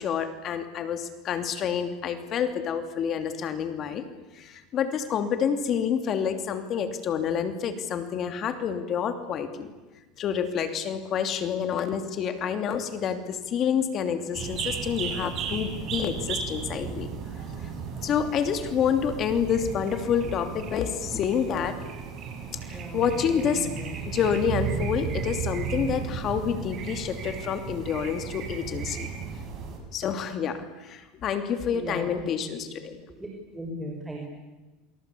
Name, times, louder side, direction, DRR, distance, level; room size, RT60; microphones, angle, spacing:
voice 1, 0.0-4.0 4.3-9.7 10.2-17.1 18.0-21.8 22.7-23.7 24.0-29.1 29.9-33.0, left 7 dB, 35° left, 8 dB, 2.9 m, -28 dB
sound 1, 14.3-29.8, right 6 dB, 40° right, 7.4 m, -34 dB
voice 2, 22.4-23.0 23.4-23.9 31.7-32.6 33.2-33.3 33.5-34.2, right 1 dB, 5° right, 1 dB, 5.5 m, -37 dB
28.0 x 25.0 x 8.6 m, 1.1 s
supercardioid pair, 140°, 0 cm